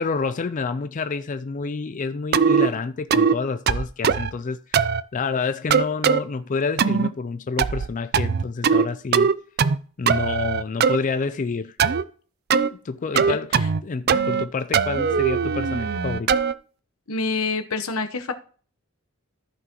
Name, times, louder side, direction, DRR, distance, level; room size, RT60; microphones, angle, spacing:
voice 1, 0.0-9.3 10.0-11.8 12.6-16.3, left 4 dB, 35° left, 0.4 m, -28 dB
sound 1, 2.3-2.7 3.1-3.4 3.7-4.3 4.7-5.0 5.7-6.2 6.8-7.1 7.6-7.9 8.1-8.9 9.1-9.8 10.1-11.0 11.8-12.0 12.5-12.7 13.2-13.8 14.1-14.4 14.7-16.5, right 6 dB, 50° right, 0.4 m, -20 dB
voice 2, 17.1-18.3, left 3 dB, 85° left, 1.0 m, -26 dB
14.0 x 6.1 x 3.0 m
head